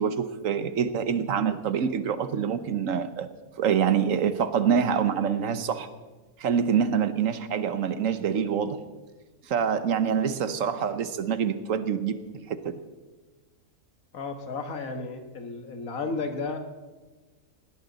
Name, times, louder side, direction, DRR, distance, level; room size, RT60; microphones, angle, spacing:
voice 1, 0.0-3.3 3.6-5.9 6.4-8.8 9.4-12.2 12.5-12.8, right 7 dB, 70° right, 1.2 m, -26 dB
voice 2, 14.1-16.6, left 3 dB, 75° left, 1.8 m, -33 dB
19.5 x 17.0 x 4.0 m
omnidirectional pair, 1.5 m